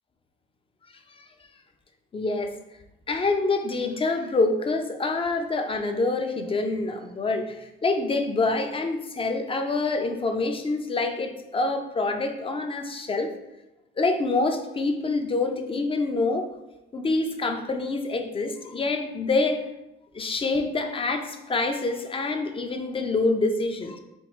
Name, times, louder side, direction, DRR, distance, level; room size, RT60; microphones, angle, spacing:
voice 1, 2.1-2.5 3.1-13.3 14.0-16.5 16.9-19.6 20.1-24.0, left 3 dB, 30° left, 5 dB, 0.4 m, -26 dB
4.3 x 2.4 x 3.0 m, 0.90 s
cardioid pair, 90°, 20 cm